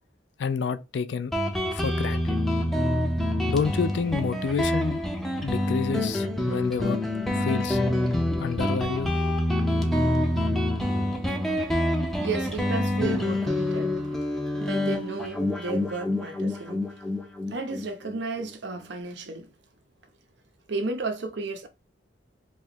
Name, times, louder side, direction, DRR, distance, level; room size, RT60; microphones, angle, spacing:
voice 1, 0.4-1.3 1.7-2.4 3.5-5.0 5.4-7.0 7.4-7.8 8.4-9.1, left 5 dB, 65° left, 0.4 m, -29 dB
Guitar, 1.3-18.5, left 1 dB, ahead, 0.5 m, -26 dB
voice 2, 12.2-13.9 14.6-16.8 17.5-19.5 20.7-21.7, right 3 dB, 65° right, 0.7 m, -33 dB
2.9 x 2.3 x 4.2 m
head